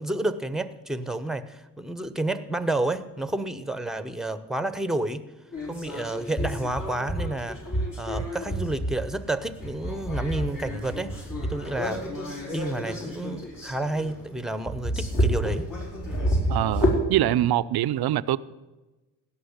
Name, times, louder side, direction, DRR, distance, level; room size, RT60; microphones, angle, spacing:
voice 1, 0.0-5.2 5.7-7.6 8.0-12.2 12.5-15.7, right 2 dB, ahead, 1.0 m, -30 dB
sound 1, 5.5-17.0, equal, 50° left, 5.0 m, -29 dB
voice 2, 16.5-18.4, right 13 dB, 65° right, 0.6 m, -24 dB
16.5 x 6.2 x 8.1 m
supercardioid pair, 55°, 41 cm